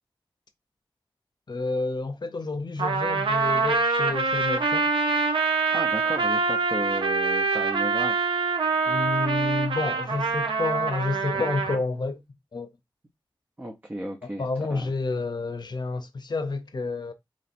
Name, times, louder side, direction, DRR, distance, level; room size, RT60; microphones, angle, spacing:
voice 1, 1.5-4.9 8.9-12.2 12.5-12.7 14.2-17.1, left 3 dB, 55° left, 0.6 m, -29 dB
Trumpet, 2.8-11.8, right 4 dB, 85° right, 0.6 m, -25 dB
voice 2, 5.7-8.3 13.6-14.9, right 1 dB, 20° right, 0.7 m, -34 dB
3.0 x 2.7 x 4.2 m
wide cardioid pair, 70°, 9 cm